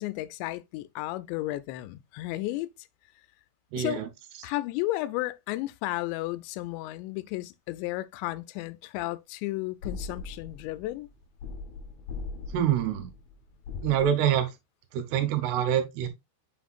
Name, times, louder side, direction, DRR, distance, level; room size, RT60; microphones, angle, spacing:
voice 1, 0.0-2.7 3.8-4.0 4.4-11.1, left 17 dB, 90° left, 2.8 m, -33 dB
voice 2, 3.7-4.0 12.5-13.1 13.8-14.5 14.9-16.1, right 10 dB, 75° right, 3.0 m, -25 dB
sound 1, 9.8-14.0, left 4 dB, 75° left, 1.6 m, -40 dB
7.2 x 5.6 x 2.4 m
omnidirectional pair, 5.0 m